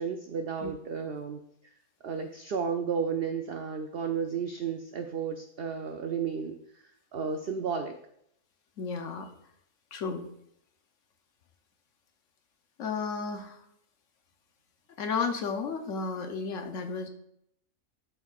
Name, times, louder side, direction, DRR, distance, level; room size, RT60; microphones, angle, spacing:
voice 1, 0.0-1.7 2.0-6.8 7.1-8.0, right 6 dB, 85° right, 5 dB, 0.5 m, -33 dB
voice 2, 8.8-9.3 9.9-10.3 12.8-13.6 15.0-17.1, left 5 dB, 65° left, 6 dB, 1.0 m, -33 dB
12.0 x 4.5 x 2.4 m, 0.73 s
omnidirectional pair, 1.6 m